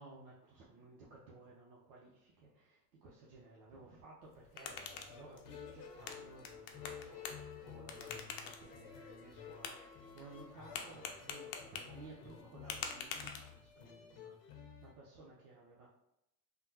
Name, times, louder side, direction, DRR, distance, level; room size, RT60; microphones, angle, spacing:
voice 1, 0.0-15.9, right 2 dB, 70° right, -5 dB, 0.8 m, -57 dB
sound 1, 4.2-13.9, left 6 dB, 50° left, 0.6 m, -48 dB
sound 2, 4.6-14.9, left 7 dB, 80° left, 0.8 m, -52 dB
3.4 x 2.2 x 2.8 m, 0.83 s
hypercardioid pair, 80°, 46 cm